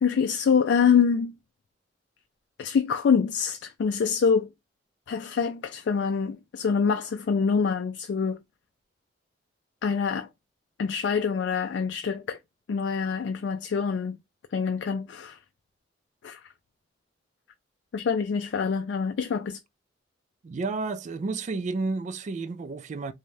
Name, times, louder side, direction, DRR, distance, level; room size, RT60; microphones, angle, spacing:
voice 1, 0.0-1.3 2.6-4.5 5.1-8.4 9.8-10.3 10.8-12.4 12.7-14.2 14.5-15.4 16.2-16.4 17.9-19.6, left 6 dB, 70° left, 0.3 m, -25 dB
voice 2, 20.4-23.1, right 3 dB, 40° right, 0.3 m, -31 dB
3.2 x 2.2 x 2.6 m
head